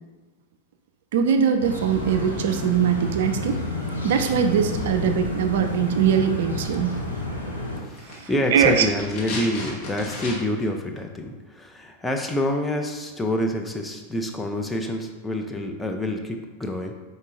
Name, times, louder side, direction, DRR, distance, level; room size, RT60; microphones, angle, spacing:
voice 1, 1.1-3.6 4.0-7.0 8.1-8.9, right 7 dB, 55° right, 6 dB, 0.3 m, -22 dB
sound 1, 1.6-7.8, left 1 dB, 80° left, 0.7 m, -30 dB
sound 2, 7.8-10.7 11.0-11.1, left 2 dB, 40° left, 1.0 m, -35 dB
voice 2, 7.8-16.9, left 1 dB, 10° left, 3 dB, 0.4 m, -27 dB
4.5 x 4.1 x 2.5 m, 1.4 s
figure-of-eight pair, 90°, 0 cm